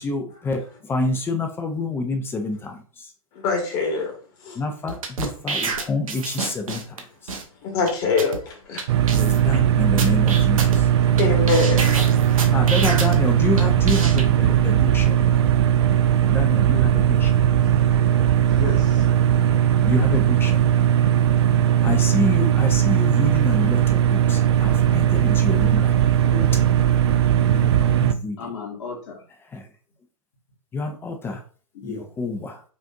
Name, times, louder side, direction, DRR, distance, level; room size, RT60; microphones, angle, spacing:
voice 1, 0.0-2.8 4.6-6.8 7.2-7.3 9.1-10.9 12.5-15.2 16.3-17.3 19.9-20.6 21.8-26.2 27.5-28.4 29.5-29.7 30.7-31.4 31.8-32.6, left 3 dB, 10° left, 0.5 m, -28 dB
voice 2, 3.3-4.1 4.4-4.6 7.6-8.8 11.2-12.2, left 4 dB, 40° left, 1.4 m, -24 dB
sound 1, 4.9-7.0 7.3-7.4 7.9-8.0 8.2-8.4 8.8-8.9 9.1-9.6 10.0-11.2 11.5-13.2 13.6-14.2, right 4 dB, 70° right, 0.9 m, -28 dB
sound 2, 8.9-28.1, right 10 dB, 50° right, 0.4 m, -18 dB
voice 3, 18.5-19.1 26.2-26.5 28.4-29.2 31.8-32.1, left 5 dB, 55° left, 1.6 m, -34 dB
5.2 x 2.6 x 2.4 m
figure-of-eight pair, 110°, 18 cm